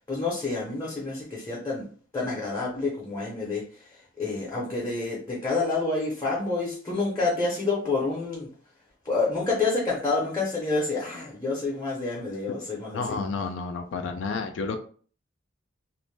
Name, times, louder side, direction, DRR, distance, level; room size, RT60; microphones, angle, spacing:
voice 1, 0.1-1.9 2.1-8.5 9.0-13.2, left 3 dB, 15° left, -5 dB, 0.6 m, -28 dB
voice 2, 12.9-14.8, left 4 dB, 65° left, 6 dB, 0.3 m, -30 dB
2.5 x 2.1 x 3.2 m, 0.43 s
head